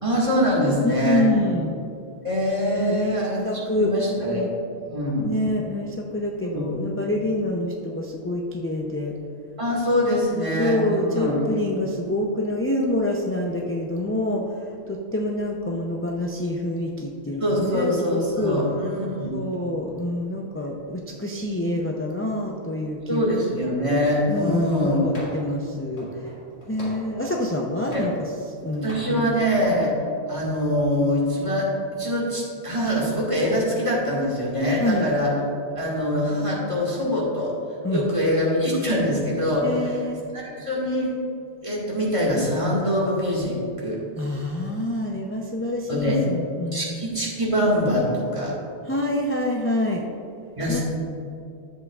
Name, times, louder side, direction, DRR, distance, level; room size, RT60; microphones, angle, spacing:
voice 1, 0.0-1.3 2.2-4.5 4.9-5.3 6.5-6.7 9.6-11.3 17.4-19.4 23.1-25.0 27.9-28.0 28.8-29.9 30.3-31.7 32.0-35.3 35.8-37.5 37.9-40.0 40.3-41.1 41.6-44.0 45.9-46.2 46.7-48.5 50.6-50.8, equal, 30° right, -5 dB, 1.8 m, -24 dB
voice 2, 0.8-1.8 2.7-3.1 3.4-3.9 4.2-4.5 5.2-9.1 10.3-18.6 19.3-23.3 24.3-26.1 26.7-28.3 28.6-29.3 34.8-35.1 37.8-38.0 39.6-40.2 44.2-47.0 48.9-50.0 50.7-50.8, left 1 dB, 20° left, -1 dB, 0.3 m, -27 dB
sound 1, 25.1-25.6 26.0-27.5 27.9-28.6 28.9-29.1, equal, 70° left, 2.3 m, -40 dB
11.0 x 7.7 x 2.4 m, 2.5 s
omnidirectional pair, 1.1 m